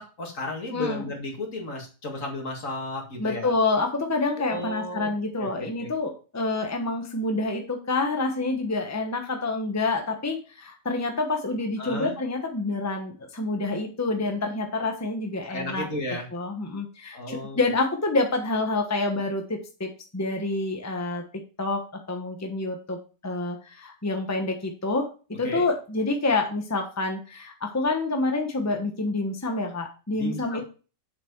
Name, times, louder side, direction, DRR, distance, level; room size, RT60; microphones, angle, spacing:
voice 1, 0.0-3.5 4.4-5.1 5.4-5.9 11.8-12.2 15.5-16.3 17.1-17.6 25.4-25.6 30.1-30.6, left 1 dB, 70° left, 1 dB, 2.5 m, -34 dB
voice 2, 0.7-1.1 3.2-15.9 16.3-21.2 21.6-21.8 22.1-25.1 25.4-30.6, left 3 dB, 15° left, 4 dB, 1.1 m, -27 dB
7.5 x 6.1 x 4.6 m, 0.35 s
omnidirectional pair, 1.4 m